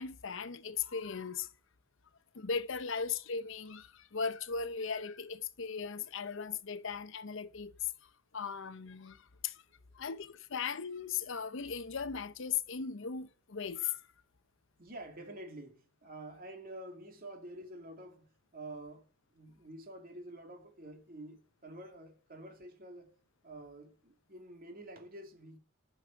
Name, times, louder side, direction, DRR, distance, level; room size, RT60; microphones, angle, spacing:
voice 1, 0.0-1.5 2.3-9.6 9.9-14.0, left 6 dB, 65° left, 0.8 m, -38 dB
voice 2, 14.8-19.1 19.3-23.1 23.4-25.6, right 1 dB, 45° right, 2.8 m, -48 dB
11.5 x 6.8 x 5.8 m
head